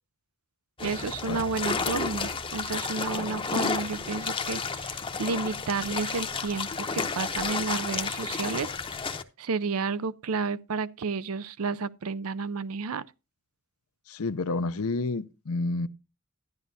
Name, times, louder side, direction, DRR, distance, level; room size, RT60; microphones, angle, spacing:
sound 1, 0.8-9.2, left 4 dB, 25° left, 0.8 m, -32 dB
voice 1, 0.8-8.7 9.4-13.1, right 4 dB, 75° right, 0.5 m, -31 dB
voice 2, 14.1-15.9, left 3 dB, 75° left, 0.7 m, -29 dB
12.0 x 11.0 x 2.7 m
head